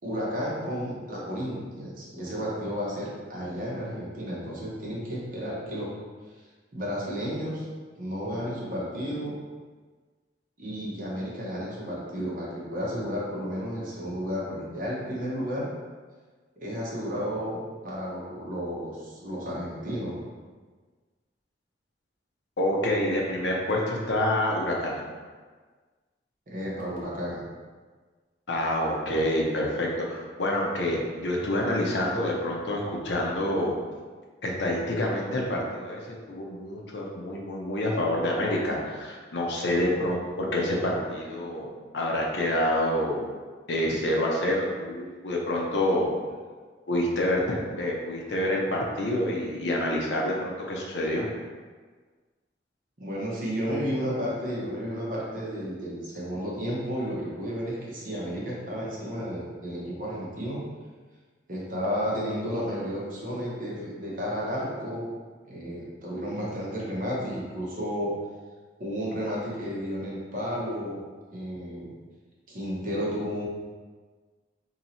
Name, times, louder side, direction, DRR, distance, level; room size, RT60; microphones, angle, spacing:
voice 1, 0.0-5.9 6.7-7.6 8.0-9.4 10.6-15.7 16.6-20.2 26.5-27.4 53.0-60.6 61.5-65.1 65.5-68.1 68.8-71.0 71.3-72.0 72.5-73.4, equal, 50° right, -5 dB, 0.9 m, -32 dB
voice 2, 22.6-25.0 28.5-33.8 34.4-41.7 41.9-43.2 43.7-46.1 46.9-51.3, left 1 dB, 75° left, -2 dB, 0.7 m, -27 dB
2.9 x 2.8 x 4.1 m, 1.4 s
head